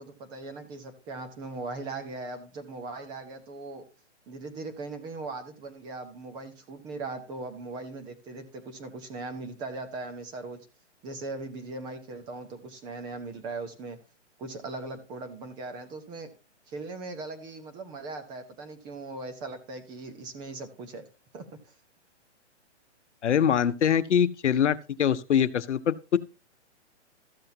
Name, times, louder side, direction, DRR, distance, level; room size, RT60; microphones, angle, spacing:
voice 1, 0.0-3.8 4.3-10.6 11.0-14.0 14.4-16.3 16.7-21.0 21.3-21.7, right 3 dB, 10° right, 0.8 m, -39 dB
voice 2, 23.2-26.2, left 8 dB, 75° left, 0.9 m, -24 dB
13.5 x 7.7 x 2.8 m
hypercardioid pair, 160°, 36 cm